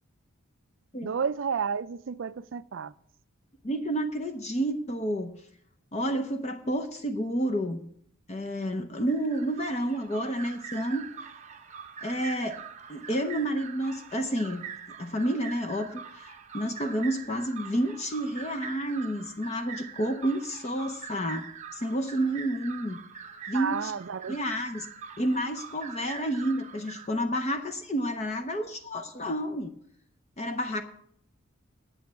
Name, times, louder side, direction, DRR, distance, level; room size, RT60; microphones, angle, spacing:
voice 1, 1.0-2.9 23.5-24.4, right 6 dB, 60° right, 0.4 m, -31 dB
voice 2, 3.6-5.3 5.9-7.8 8.3-11.0 12.0-12.6 12.9-14.6 15.0-21.5 21.7-23.0 23.5-23.9 24.3-24.9 25.2-29.7 30.4-30.8, right 1 dB, 30° left, 0.6 m, -30 dB
sound 1, 9.1-27.1, right 7 dB, 30° right, 0.8 m, -44 dB
9.1 x 8.3 x 7.5 m
head